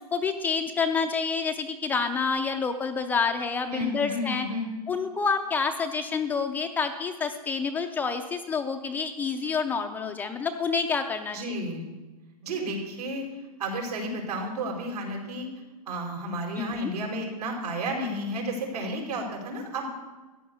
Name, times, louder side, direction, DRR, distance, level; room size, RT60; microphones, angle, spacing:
voice 1, 0.0-4.5 4.9-11.4 16.6-16.9, left 5 dB, 10° left, 5 dB, 0.5 m, -28 dB
voice 2, 3.7-4.7 11.3-11.8 12.4-13.2 13.6-15.5 15.9-19.9, right 1 dB, 80° right, 1 dB, 4.8 m, -32 dB
14.0 x 10.0 x 6.7 m, 1.2 s
hypercardioid pair, 155°, 20 cm